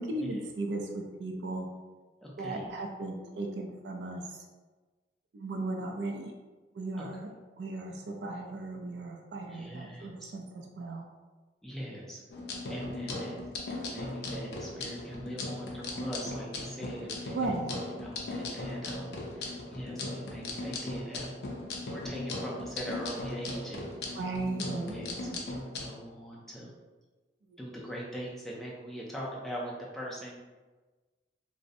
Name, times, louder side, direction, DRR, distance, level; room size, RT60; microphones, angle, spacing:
voice 1, 0.0-1.7 2.4-4.4 5.3-6.3 6.7-7.3 7.6-11.1 17.3-17.7 24.2-25.0 25.3-25.4 27.5-27.6, right 2 dB, 80° right, 1 dB, 0.3 m, -36 dB
voice 2, 2.2-2.7 7.0-7.1 9.5-10.3 11.6-12.2 12.7-13.4 13.8-17.4 18.0-21.3 21.9-24.2 24.9-26.7 27.6-30.4, equal, ahead, -5 dB, 0.4 m, -42 dB
sound 1, 12.3-25.9, left 2 dB, 65° left, 0.4 m, -38 dB
2.5 x 2.0 x 2.5 m, 1.3 s
head